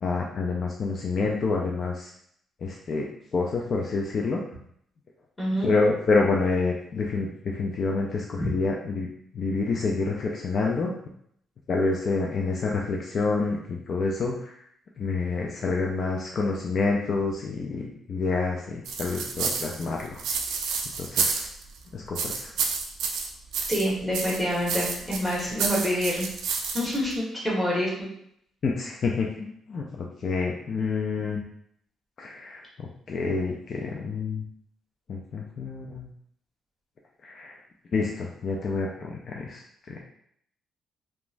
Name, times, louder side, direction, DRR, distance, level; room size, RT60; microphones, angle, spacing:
voice 1, 0.0-2.1 2.6-3.1 3.3-4.4 5.6-9.1 9.3-10.9 11.7-14.5 15.0-20.2 21.0-21.5 21.9-22.5 28.6-31.4 32.2-32.6 33.1-34.4 35.1-36.1 37.2-37.6 37.9-39.6 39.9-40.0, left 3 dB, 55° left, -1 dB, 0.3 m, -28 dB
voice 2, 5.4-5.7 8.4-8.5 23.7-26.3 26.7-28.1, equal, 10° left, -6 dB, 1.3 m, -27 dB
sound 1, 18.8-21.8 22.1-23.9 24.1-27.1, right 5 dB, 80° right, 0.4 m, -29 dB
2.9 x 2.2 x 2.5 m, 0.69 s
cardioid pair, 90°, 0 cm